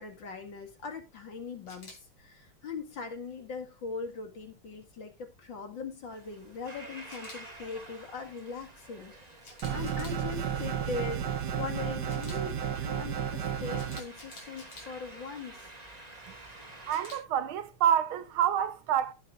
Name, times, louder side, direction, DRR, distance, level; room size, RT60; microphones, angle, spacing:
voice 1, 0.0-9.1 9.7-15.7, left 4 dB, 60° left, 2.7 m, -40 dB
Camera, 1.7-2.0 7.1-7.4 9.4-10.2 12.1-12.4 13.7-14.9 16.9-17.2, left 3 dB, 90° left, 4.5 m, -48 dB
sound 1, 6.1-17.2, right 2 dB, 20° right, 1.9 m, -50 dB
sound 2, 9.6-14.0, right 8 dB, 60° right, 1.5 m, -32 dB
voice 2, 16.9-19.1, right 9 dB, 85° right, 1.7 m, -27 dB
18.0 x 7.1 x 2.5 m
omnidirectional pair, 2.3 m